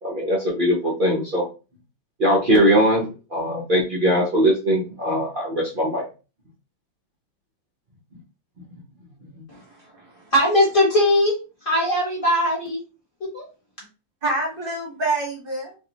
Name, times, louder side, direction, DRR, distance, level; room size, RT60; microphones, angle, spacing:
voice 1, 0.0-1.5 2.2-6.0, equal, 75° right, -5 dB, 0.4 m, -20 dB
voice 2, 9.5-10.3 14.2-15.8, right 2 dB, 40° right, -2 dB, 0.9 m, -28 dB
voice 3, 10.3-12.8 13.3-13.4, left 1 dB, 30° left, -4 dB, 1.1 m, -20 dB
3.2 x 2.6 x 2.9 m, 0.32 s
omnidirectional pair, 2.2 m